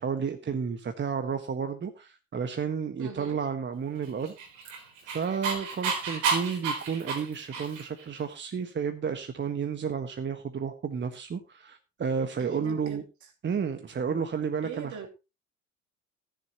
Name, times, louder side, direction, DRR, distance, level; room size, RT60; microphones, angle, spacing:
voice 1, 0.0-4.3 5.0-13.0 13.4-15.0, right 6 dB, 30° right, 1.5 m, -32 dB
voice 2, 3.0-3.4 12.4-13.0 14.6-15.1, right 7 dB, 50° right, 3.0 m, -40 dB
Dog, 4.2-8.0, right 5 dB, 75° right, 3.9 m, -31 dB
15.5 x 10.5 x 2.9 m
figure-of-eight pair, 60°, 38 cm